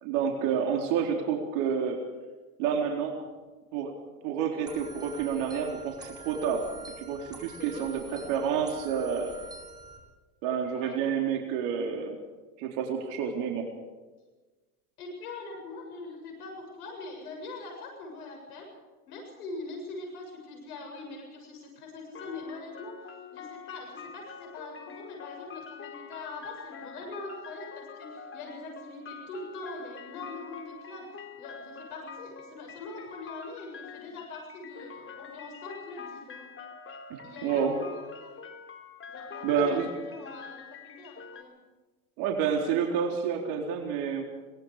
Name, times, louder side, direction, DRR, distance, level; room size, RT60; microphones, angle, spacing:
voice 1, 0.0-2.0 2.6-3.2 3.7-3.9 4.2-6.7 7.0-9.3 10.4-12.1 12.6-13.7 37.4-37.8 39.4-39.9 42.2-44.2, right 7 dB, 65° right, 2 dB, 4.0 m, -29 dB
sound 1, 4.7-10.0, right 2 dB, 10° right, 7.3 m, -44 dB
voice 2, 7.6-8.6 10.8-11.0 15.0-18.7 19.1-22.9 23.3-36.5 37.2-38.3 39.1-41.5, left 3 dB, 90° left, 1 dB, 7.4 m, -43 dB
sound 2, 22.1-41.4, left 5 dB, 30° left, 3.2 m, -46 dB
25.0 x 21.5 x 5.0 m, 1.2 s
supercardioid pair, 105°, 44 cm